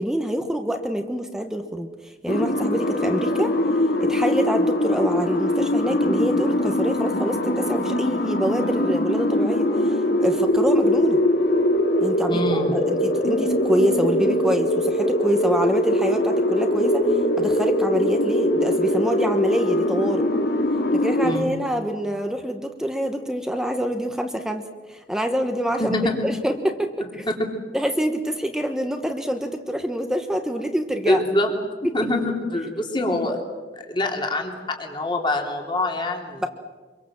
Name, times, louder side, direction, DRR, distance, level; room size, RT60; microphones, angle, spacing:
voice 1, 0.0-3.5 4.0-11.2 12.0-20.2 20.9-24.6 24.9-26.0 26.2-27.3 27.7-31.2 31.8-32.1 36.4-36.5, equal, 5° right, 5 dB, 1.2 m, -26 dB
sound 1, 2.3-21.4, left 1 dB, 65° left, 2.4 m, -22 dB
voice 2, 12.3-12.9 21.2-21.5 25.8-26.3 31.1-31.5 31.9-33.4 33.9-36.4, left 1 dB, 30° left, 2 dB, 3.0 m, -25 dB
25.5 x 23.5 x 7.4 m, 1.4 s
head